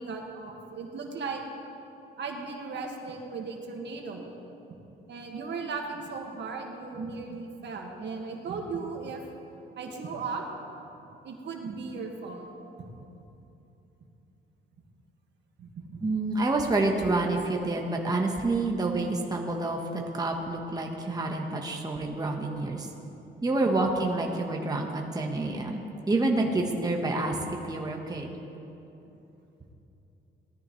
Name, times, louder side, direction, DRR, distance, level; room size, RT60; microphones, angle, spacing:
voice 1, 0.0-1.4 2.2-4.3 5.1-9.2 9.8-10.4 11.2-12.5 12.8-12.9 15.6-16.0 26.5-26.7, right 4 dB, 60° right, 1 dB, 1.8 m, -37 dB
voice 2, 16.0-22.9 23.4-27.4 27.6-28.3, right 2 dB, 20° right, 1 dB, 1.3 m, -28 dB
18.5 x 13.0 x 3.2 m, 3.0 s
cardioid pair, 90°, 20 cm